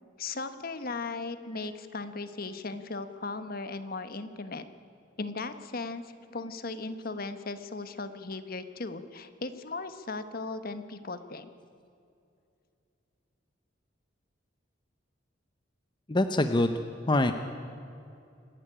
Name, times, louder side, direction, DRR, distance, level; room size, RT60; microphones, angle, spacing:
voice 1, 0.2-4.6 5.2-11.5, left 3 dB, 50° left, 10 dB, 1.2 m, -37 dB
voice 2, 16.1-16.7 17.1-17.3, left 2 dB, 25° left, 8 dB, 0.8 m, -24 dB
26.5 x 11.5 x 10.0 m, 2.6 s
head